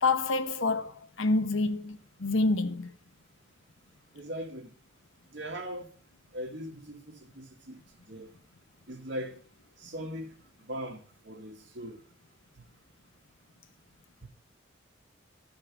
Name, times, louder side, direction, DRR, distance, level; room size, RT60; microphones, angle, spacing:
voice 1, 0.0-2.9, left 3 dB, 85° left, 0.9 m, -27 dB
voice 2, 4.1-4.7 5.3-5.9 6.3-7.8 8.1-8.3 8.9-9.4 9.8-12.0 12.6-12.7 14.2-14.3, equal, 65° right, 2.1 m, -40 dB
14.0 x 5.3 x 4.9 m
head